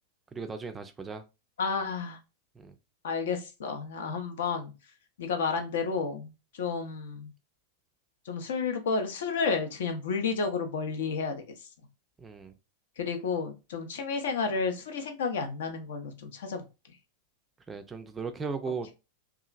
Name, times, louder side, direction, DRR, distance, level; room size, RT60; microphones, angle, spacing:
voice 1, 0.3-1.2 2.6-2.7 12.2-12.5 17.7-18.9, right 4 dB, 15° right, 0.3 m, -37 dB
voice 2, 1.6-2.2 3.0-4.7 5.2-7.3 8.3-11.4 13.0-16.7, left 5 dB, 60° left, 0.5 m, -31 dB
2.8 x 2.4 x 2.4 m
figure-of-eight pair, 90°, 0 cm